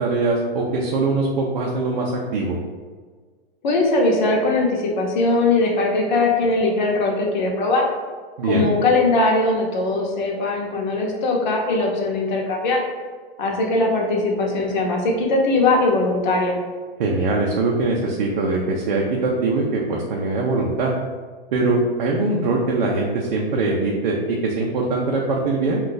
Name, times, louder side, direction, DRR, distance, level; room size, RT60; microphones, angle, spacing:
voice 1, 0.0-2.6 8.4-8.7 17.0-20.9 21.5-25.8, right 3 dB, 50° right, -1 dB, 0.5 m, -22 dB
voice 2, 3.6-7.9 8.4-12.8 13.4-16.6, left 2 dB, 50° left, 0 dB, 0.8 m, -20 dB
2.6 x 2.4 x 3.8 m, 1.5 s
hypercardioid pair, 150°, 30 cm